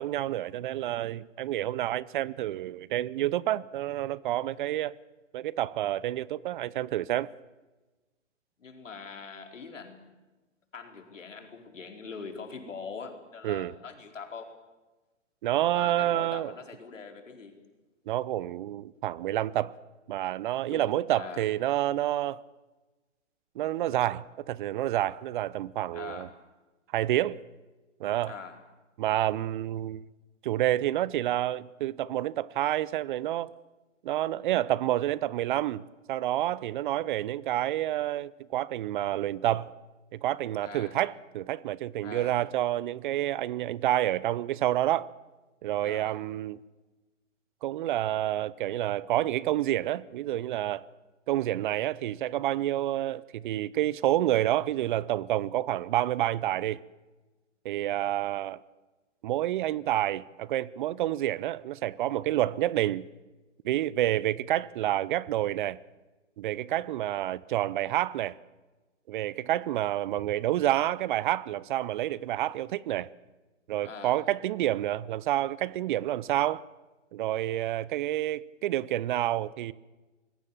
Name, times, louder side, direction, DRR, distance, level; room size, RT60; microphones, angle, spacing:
voice 1, 0.0-5.0 5.3-7.3 13.4-13.7 15.4-16.5 18.1-19.7 20.1-22.4 23.6-26.3 26.9-27.4 28.0-28.3 29.0-30.0 30.4-33.5 34.0-39.7 40.1-45.1 45.6-46.6 47.6-50.9 51.3-56.8 57.6-58.6 59.2-63.1 63.6-65.8 66.4-68.4 69.1-73.1 73.7-76.6 77.1-79.7, right 13 dB, 40° right, 0.7 m, -29 dB
voice 2, 8.6-10.0 10.7-14.5 15.7-17.6 20.7-21.5 25.9-26.3 28.2-28.6 40.6-41.0 42.0-42.4 45.8-46.2 73.8-74.2, left 5 dB, 85° left, 4.5 m, -42 dB
25.5 x 21.5 x 7.3 m
hypercardioid pair, 130°, 37 cm